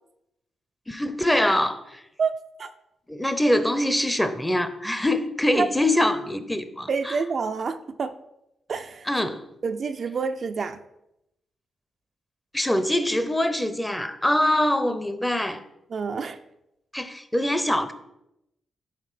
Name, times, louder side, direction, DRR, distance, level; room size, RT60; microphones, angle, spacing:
voice 1, 0.9-2.0 3.1-7.2 9.1-9.4 12.5-15.6 16.9-17.9, left 1 dB, 10° left, 0.6 m, -24 dB
voice 2, 2.2-2.7 5.5-5.7 6.9-8.1 8.7-9.4 9.6-10.8 15.9-16.4, right 5 dB, 55° right, 0.3 m, -28 dB
5.7 x 3.5 x 4.9 m
supercardioid pair, 60°, 0 cm